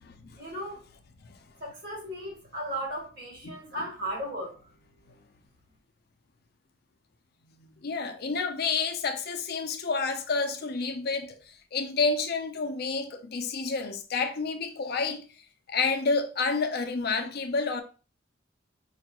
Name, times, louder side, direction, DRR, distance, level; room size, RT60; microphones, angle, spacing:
voice 1, 0.4-0.8 1.6-4.5, right 1 dB, 60° right, 2.1 m, -36 dB
voice 2, 3.4-3.9 7.6-15.2 15.7-17.8, left 4 dB, 60° left, 0.5 m, -29 dB
4.6 x 2.4 x 2.9 m
head